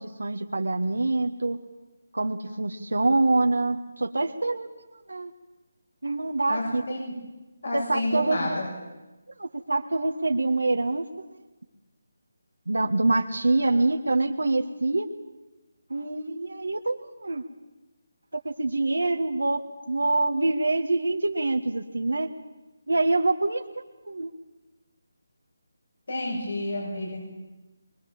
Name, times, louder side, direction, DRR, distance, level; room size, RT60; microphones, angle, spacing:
voice 1, 0.0-1.6 2.1-4.7 5.1-5.3 6.0-6.8 7.7-8.4 9.4-11.1 12.7-15.1 15.9-17.4 18.4-19.6 19.9-22.3 22.9-24.3, right 2 dB, 85° right, 4 dB, 1.7 m, -25 dB
voice 2, 6.5-7.1 7.6-8.7 13.6-13.7 26.1-27.3, left 1 dB, 70° left, -1 dB, 7.3 m, -30 dB
23.5 x 21.5 x 7.4 m, 1.1 s
figure-of-eight pair, 160°, 0 cm